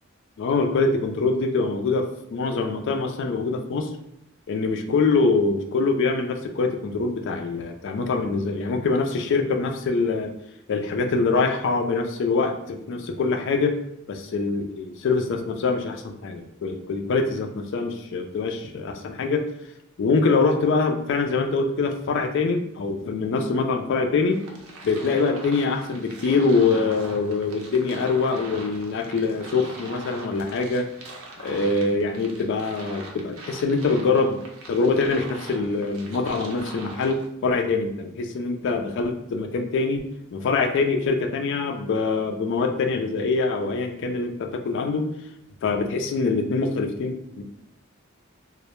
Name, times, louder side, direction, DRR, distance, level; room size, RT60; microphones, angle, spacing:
voice 1, 0.4-2.1 2.3-3.9 4.5-10.3 10.7-13.8 14.1-19.4 20.0-24.4 24.8-30.9 31.4-34.4 34.7-40.0 40.3-45.0 45.6-47.4, left 4 dB, 55° left, 4 dB, 0.3 m, -24 dB
sound 1, 24.3-37.3, right 2 dB, 80° right, 0.5 m, -42 dB
2.1 x 2.0 x 2.9 m, 0.79 s
head